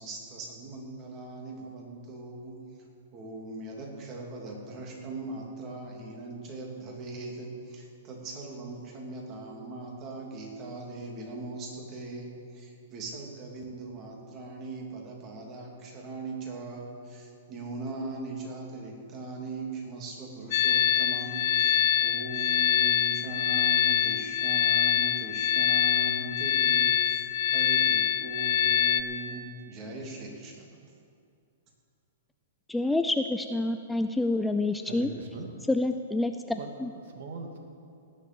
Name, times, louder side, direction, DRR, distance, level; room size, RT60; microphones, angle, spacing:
voice 1, 0.0-2.7 3.1-30.8, right 2 dB, 35° right, 0 dB, 3.1 m, -40 dB
sound 1, 20.5-29.0, left 9 dB, 55° left, 0.6 m, -24 dB
voice 2, 32.7-35.1 35.7-36.9, left 2 dB, 5° left, 7 dB, 0.5 m, -28 dB
voice 3, 34.9-35.6 36.5-37.6, right 3 dB, 70° right, 3 dB, 2.3 m, -41 dB
18.5 x 7.4 x 8.0 m, 2.4 s
hypercardioid pair, 135°, 0 cm